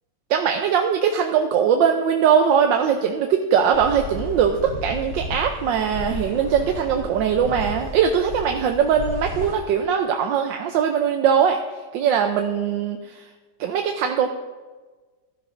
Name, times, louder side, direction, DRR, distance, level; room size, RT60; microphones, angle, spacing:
voice 1, 0.3-11.6 11.9-13.2 13.6-14.3, right 7 dB, 90° right, 4 dB, 1.4 m, -21 dB
sound 1, 3.7-9.5, left 1 dB, 50° left, 2.6 m, -33 dB
15.5 x 12.5 x 2.6 m, 1.3 s
omnidirectional pair, 2.0 m